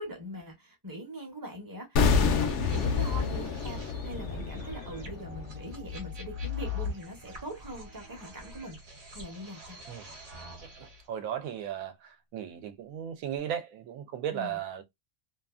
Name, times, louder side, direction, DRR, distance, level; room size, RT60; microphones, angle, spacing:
voice 1, 0.0-8.8 9.1-9.8 14.3-14.6, right 1 dB, 20° right, 0.6 m, -42 dB
sound 1, 2.0-7.0 7.2-7.4, left 5 dB, 65° left, 0.8 m, -29 dB
sound 2, 2.2-11.0, left 6 dB, 55° right, 1.1 m, -40 dB
voice 2, 10.8-14.8, right 9 dB, 80° right, 1.0 m, -36 dB
2.7 x 2.4 x 2.3 m
omnidirectional pair, 1.4 m